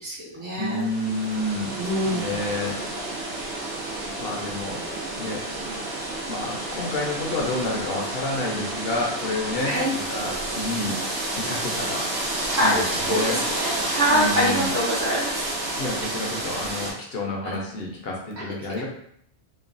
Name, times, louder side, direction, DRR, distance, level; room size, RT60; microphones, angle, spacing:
voice 1, 0.0-0.9 1.8-2.4 9.6-9.9 12.4-12.8 13.1-15.5 17.5-17.6 18.4-18.5, equal, 25° right, -8 dB, 0.4 m, -25 dB
voice 2, 0.6-1.7 2.1-2.8 4.2-4.8 5.2-5.4 6.3-10.9 11.4-12.0 12.6-13.4 14.1-14.7 15.8-18.8, left 2 dB, 65° left, -1 dB, 0.9 m, -29 dB
sound 1, 0.6-16.9, right 1 dB, 80° right, 1.1 m, -30 dB
3.0 x 2.2 x 2.5 m, 0.69 s
omnidirectional pair, 1.1 m